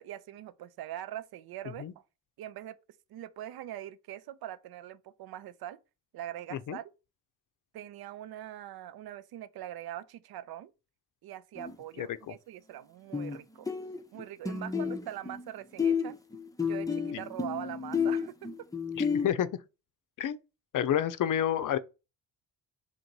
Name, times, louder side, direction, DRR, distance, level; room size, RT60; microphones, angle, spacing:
voice 1, 0.0-1.9 2.4-2.7 3.1-5.8 6.1-6.8 7.7-10.7 11.2-13.7 14.1-16.2 16.6-18.3, right 12 dB, 60° right, 0.6 m, -42 dB
sound 1, 11.6-11.7 13.1-13.4 13.7-15.5 15.8-19.3, left 6 dB, 10° left, 0.6 m, -31 dB
voice 2, 12.0-12.3 17.1-17.2 19.0-19.5 20.2-20.4 20.7-21.8, left 10 dB, 45° left, 0.6 m, -29 dB
3.6 x 2.6 x 4.5 m
hypercardioid pair, 50°, 43 cm